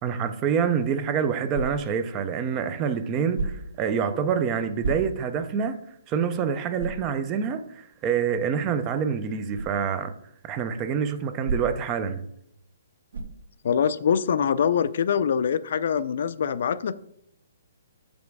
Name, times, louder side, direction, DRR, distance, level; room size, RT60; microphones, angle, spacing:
voice 1, 0.0-5.8 6.1-10.1 10.4-12.2, right 7 dB, 15° right, 10 dB, 0.4 m, -26 dB
sound 1, 1.5-2.0 3.3-3.8 4.8-5.4 5.9-6.0 6.8-7.1 9.5-9.8 11.4-12.0 13.1-13.5, right 3 dB, 80° right, 1.8 m, -31 dB
voice 2, 13.6-16.9, left 7 dB, 50° left, 14 dB, 0.4 m, -24 dB
7.6 x 5.1 x 4.7 m, 0.74 s
hypercardioid pair, 170°, 0 cm